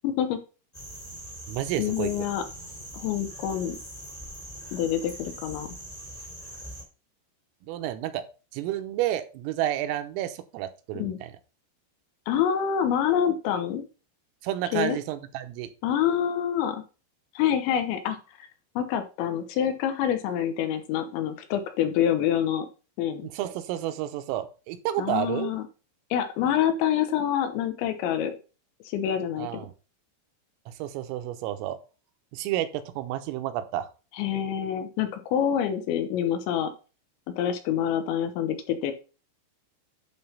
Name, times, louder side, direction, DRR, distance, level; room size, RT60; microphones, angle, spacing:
voice 1, 0.0-0.4 1.8-2.4 2.9-3.8 4.7-5.8 10.9-11.2 12.3-13.9 14.7-15.0 15.8-16.8 17.4-18.5 18.8-22.7 23.0-23.3 25.0-25.6 26.1-28.4 28.9-29.6 34.2-36.7 37.4-38.9, left 9 dB, 75° left, 8 dB, 3.0 m, -26 dB
sound 1, 0.7-6.8, right 1 dB, 15° left, 1.4 m, -42 dB
voice 2, 1.5-2.1 7.6-8.2 8.5-11.3 14.4-15.7 23.2-25.5 29.4-29.7 30.7-31.8 32.3-33.9, right 13 dB, 85° right, 9 dB, 3.4 m, -30 dB
11.0 x 3.9 x 5.5 m, 0.33 s
omnidirectional pair, 6.0 m